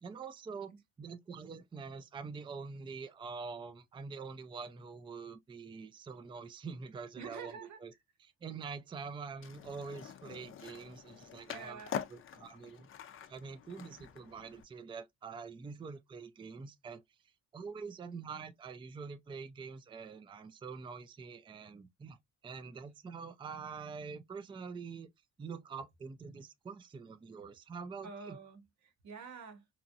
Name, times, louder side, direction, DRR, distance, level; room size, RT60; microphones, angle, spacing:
voice 1, 0.0-0.7 1.0-7.5 7.8-7.9 8.2-11.8 12.1-12.9 13.3-17.0 17.5-22.2 22.4-25.1 25.4-28.4, right 5 dB, 15° right, 0.4 m, -45 dB
voice 2, 7.2-7.8 11.5-12.0 28.0-29.7, right 5 dB, 70° right, 1.0 m, -48 dB
Skateboard, 9.4-14.6, left 8 dB, 45° left, 0.4 m, -45 dB
3.0 x 2.4 x 2.6 m
cardioid pair, 90°, 30 cm